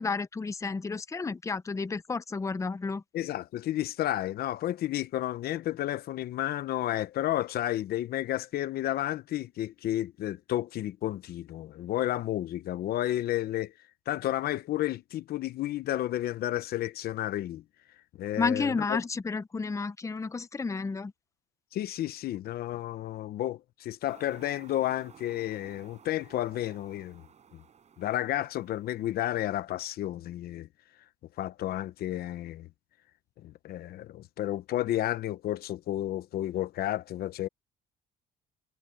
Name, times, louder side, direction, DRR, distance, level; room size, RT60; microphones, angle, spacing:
voice 1, 0.0-3.0 18.4-21.1, left 4 dB, 20° left, 0.8 m, -31 dB
voice 2, 3.1-13.7 14.1-17.6 18.2-19.0 21.7-27.2 27.5-27.6 28.0-30.7 31.4-32.7 33.4-37.5, left 13 dB, 65° left, 0.9 m, -32 dB
sound 1, 24.0-29.6, right 7 dB, 40° right, 6.6 m, -56 dB
cardioid pair, 110°, 17 cm